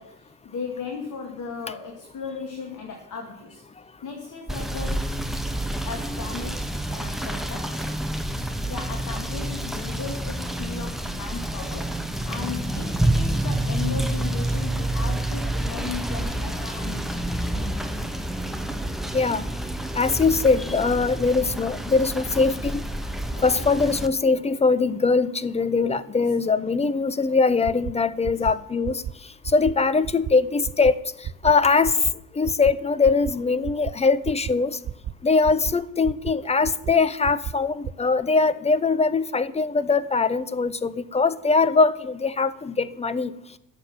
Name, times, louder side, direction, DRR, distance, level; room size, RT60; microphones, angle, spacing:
voice 1, 0.0-3.6 4.0-5.0 5.8-7.8 8.7-17.9 20.2-20.3 23.3-23.6 26.1-26.3 28.2-28.5, left 5 dB, 45° left, 3 dB, 2.2 m, -37 dB
Rain / Motor vehicle (road), 4.5-24.1, right 1 dB, ahead, 1.4 m, -28 dB
voice 2, 19.1-19.4 19.9-22.8 23.4-29.0 29.4-32.0 32.3-34.8 35.2-43.3, left 4 dB, 15° left, 15 dB, 0.8 m, -22 dB
sound 1, 27.6-27.9 28.2-28.5 28.8-29.1 29.4-29.7 30.0-30.3 30.6-30.9 31.2-31.5 31.8-32.1 32.4-32.7 33.0-33.3 33.6-33.9 34.2-34.5 34.8-35.1 35.4-35.7 36.0-36.3 36.6-36.9 37.2-37.5 37.8-37.9, right 10 dB, 30° right, 0.6 m, -31 dB
14.0 x 7.3 x 9.0 m, 0.80 s
figure-of-eight pair, 50°, 44 cm